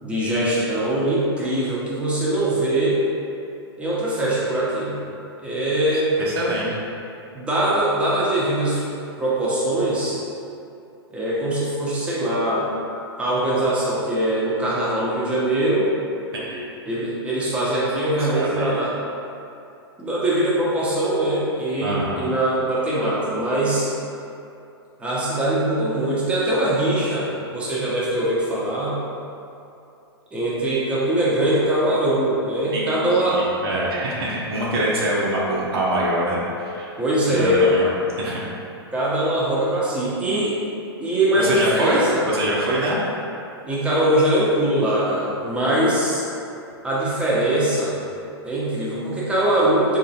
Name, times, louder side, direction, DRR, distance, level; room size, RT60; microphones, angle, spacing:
voice 1, 0.0-3.0 3.8-4.9 5.4-6.1 7.3-8.8 9.2-10.2 11.1-12.7 13.2-15.9 16.9-18.9 20.0-23.9 25.0-29.0 30.3-33.4 37.0-37.7 38.9-40.6 41.0-42.2 43.7-46.3 46.8-47.9 48.4-50.0, right 1 dB, 10° right, -8 dB, 0.9 m, -22 dB
voice 2, 6.2-6.7 16.3-16.6 18.2-18.7 21.8-22.2 32.7-36.9 37.3-38.4 41.4-43.0, right 1 dB, 70° right, -6 dB, 0.8 m, -24 dB
3.9 x 2.9 x 2.8 m, 2.7 s
hypercardioid pair, 120°, 14 cm